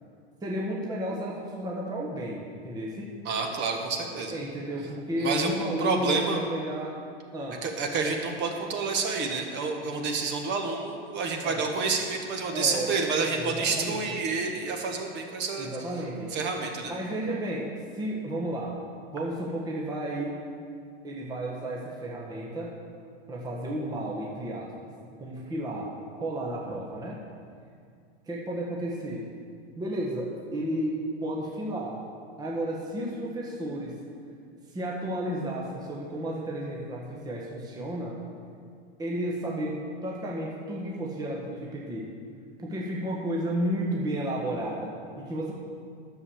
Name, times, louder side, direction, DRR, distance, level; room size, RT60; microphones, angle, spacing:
voice 1, 0.4-3.1 4.3-7.0 7.3-7.6 11.4-11.6 12.5-14.2 15.6-16.3 16.8-17.7 18.0-18.8 19.1-20.4 21.0-22.7 23.3-24.9 25.2-25.9 26.2-27.2 28.3-29.3 29.8-32.0 32.4-33.9 34.7-38.2 39.0-42.1 42.6-45.5, right 1 dB, 10° right, -3 dB, 1.2 m, -32 dB
voice 2, 3.2-4.4 5.2-5.5 5.8-6.4 7.6-15.7 16.3-16.9, right 4 dB, 30° right, 3 dB, 1.4 m, -29 dB
11.0 x 7.0 x 7.1 m, 2.2 s
supercardioid pair, 150°, 33 cm